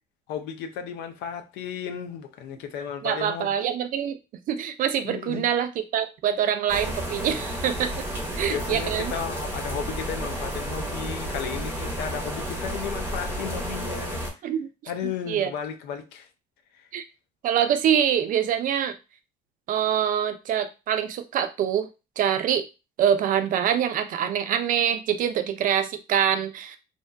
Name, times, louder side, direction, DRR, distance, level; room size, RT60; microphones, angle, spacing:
voice 1, 0.3-3.5 5.0-5.5 8.5-14.2 14.9-16.3 16.8-16.9, left 7 dB, 85° left, 0.5 m, -34 dB
voice 2, 3.0-4.2 4.5-8.0 8.4-9.1 14.4-14.7 15.3-15.5 16.9-17.0 17.4-19.0 19.7-21.9 22.2-22.6 23.0-26.8, right 9 dB, 55° right, 0.4 m, -25 dB
sound 1, 6.7-14.3, right 1 dB, 15° right, 0.8 m, -32 dB
2.6 x 2.1 x 2.4 m
cardioid pair, 110°, 17 cm